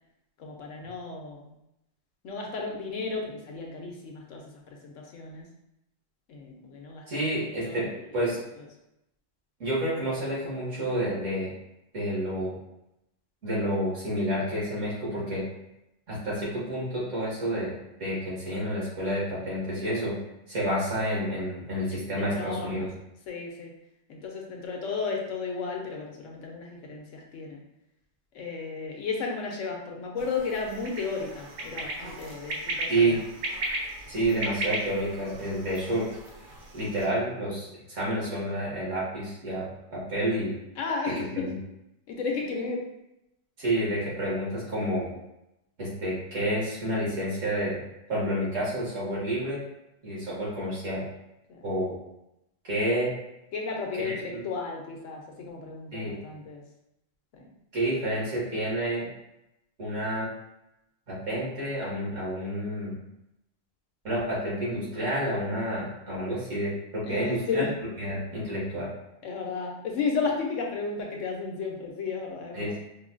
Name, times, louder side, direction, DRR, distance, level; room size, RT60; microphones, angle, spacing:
voice 1, 0.4-1.5 2.2-5.5 6.3-8.7 21.9-22.9 23.3-23.7 24.1-27.6 28.3-33.2 40.8-41.5 42.1-42.9 51.5-51.7 53.5-56.6 57.3-57.5 67.0-67.7 69.2-72.7, left 4 dB, 75° left, 0 dB, 1.0 m, -34 dB
voice 2, 7.1-7.9 8.1-8.4 9.6-11.5 11.9-12.6 13.4-15.4 16.1-17.7 18.0-20.2 20.5-22.9 32.9-33.2 34.1-36.1 36.7-40.6 41.4-41.5 43.6-45.1 45.8-47.8 48.1-49.6 50.0-51.1 51.6-52.0 52.6-53.1 54.0-54.4 55.9-56.1 57.7-59.1 59.8-60.3 61.1-62.9 64.0-67.6 68.0-68.9 72.5-72.8, right 1 dB, 70° right, -7 dB, 1.8 m, -29 dB
sound 1, 30.2-37.1, right 1 dB, 45° right, 0.6 m, -36 dB
4.8 x 2.2 x 2.5 m, 0.85 s
omnidirectional pair, 1.3 m